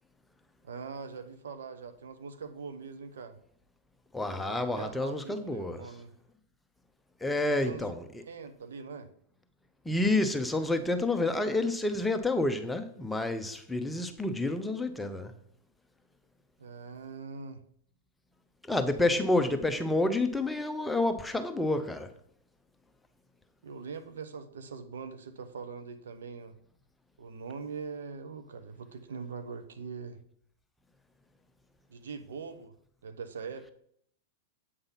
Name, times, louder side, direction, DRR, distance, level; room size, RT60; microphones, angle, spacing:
voice 1, 0.6-3.4 4.3-6.1 7.5-7.9 8.3-9.1 16.6-17.6 19.0-19.5 23.6-26.5 27.2-30.2 31.9-32.7 33.0-33.7, right 5 dB, 80° right, 0.9 m, -42 dB
voice 2, 4.1-5.8 7.2-8.0 9.8-15.3 18.7-22.1, left 2 dB, 5° left, 0.8 m, -29 dB
8.1 x 3.7 x 5.6 m
hypercardioid pair, 110°, 0 cm